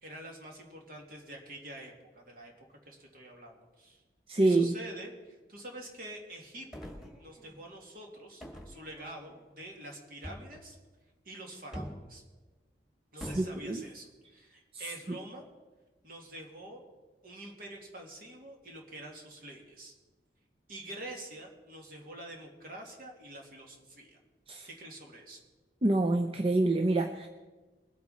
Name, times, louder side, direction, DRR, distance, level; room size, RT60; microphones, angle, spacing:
voice 1, 0.0-4.0 4.4-10.8 11.2-12.2 13.1-15.5 16.0-16.8 17.2-19.9 20.7-24.2 24.6-25.4, right 1 dB, 55° right, 1 dB, 2.5 m, -47 dB
voice 2, 4.3-4.7 13.4-13.8 24.5-24.7 25.8-27.3, right 2 dB, 30° right, 5 dB, 0.6 m, -26 dB
sound 1, 6.7-7.7 8.4-9.4 10.2-10.7 11.7-12.1 13.2-13.6, equal, ahead, 2.0 m, -44 dB
21.5 x 8.6 x 4.3 m, 1.2 s
head